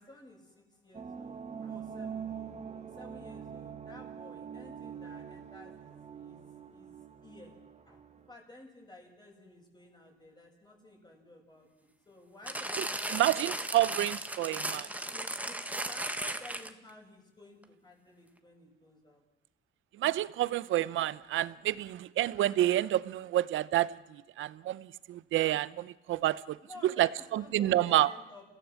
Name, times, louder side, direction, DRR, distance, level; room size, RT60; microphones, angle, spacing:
voice 1, 0.0-2.3 2.8-5.9 6.2-6.4 6.7-6.9 7.2-7.6 7.9-8.0 8.3-13.9 14.5-19.2 26.6-28.4, left 2 dB, 20° left, 1 dB, 7.4 m, -54 dB
sound 1, 0.9-8.3, right 7 dB, 35° right, 1.7 m, -44 dB
sound 2, 12.5-16.9 17.6-17.7, right 1 dB, 5° right, 1.6 m, -36 dB
voice 2, 13.1-14.9 20.0-26.6 26.8-28.1, right 14 dB, 80° right, 17 dB, 0.8 m, -29 dB
29.5 x 16.5 x 7.5 m, 1.0 s
cardioid pair, 90°, 20 cm